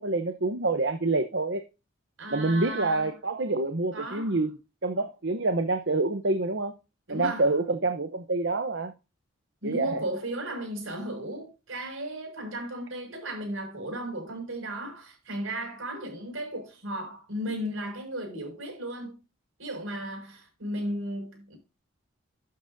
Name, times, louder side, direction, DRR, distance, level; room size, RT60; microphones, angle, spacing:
voice 1, 0.0-1.6 2.3-4.5 4.8-6.7 7.1-8.9 9.6-10.0, right 2 dB, 55° right, 0.9 m, -27 dB
voice 2, 2.2-3.1 3.9-4.4 7.1-7.5 9.6-19.1 19.6-21.6, right 1 dB, 75° right, 6.1 m, -35 dB
12.5 x 8.6 x 2.7 m
head